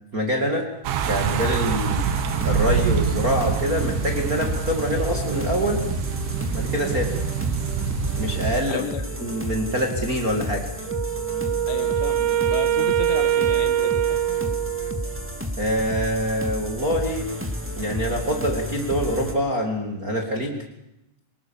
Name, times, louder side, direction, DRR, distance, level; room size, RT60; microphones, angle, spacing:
voice 1, 0.1-0.7 1.1-2.1 2.4-5.8 6.5-7.2 8.2-8.8 9.2-10.7 15.6-17.3 17.8-20.6, equal, 30° right, 2 dB, 1.9 m, -25 dB
sound 1, 0.8-8.6, right 7 dB, 80° right, 3.6 m, -26 dB
sound 2, 1.0-19.3, left 1 dB, 5° right, 0.9 m, -32 dB
voice 2, 8.7-9.0 11.7-14.2, left 9 dB, 80° left, 10 dB, 3.7 m, -33 dB
Wind instrument woodwind instrument, 10.9-15.2, right 11 dB, 65° right, 3.4 m, -23 dB
24.5 x 20.0 x 7.3 m, 0.85 s
omnidirectional pair, 4.9 m